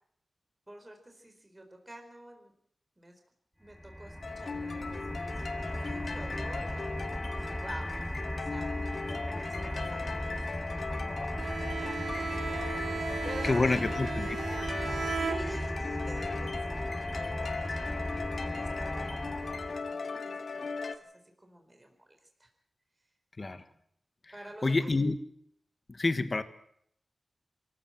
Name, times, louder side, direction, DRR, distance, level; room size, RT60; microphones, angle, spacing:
voice 1, 0.7-2.5 3.0-3.2 3.6-11.1 11.8-13.9 15.1-21.1 21.4-22.0 22.4-22.5 24.3-24.9, right 1 dB, 20° right, 4 dB, 4.3 m, -49 dB
sound 1, 3.7-19.9, equal, 5° left, 1.1 m, -37 dB
sound 2, 4.2-20.9, left 4 dB, 70° left, 1.8 m, -38 dB
Bowed string instrument, 11.4-16.0, right 5 dB, 85° right, 1.4 m, -37 dB
voice 2, 13.4-14.7 23.4-23.6 24.6-25.2 25.9-26.4, left 3 dB, 40° left, 10 dB, 1.5 m, -28 dB
24.0 x 15.0 x 7.7 m, 0.70 s
wide cardioid pair, 80°, 0 cm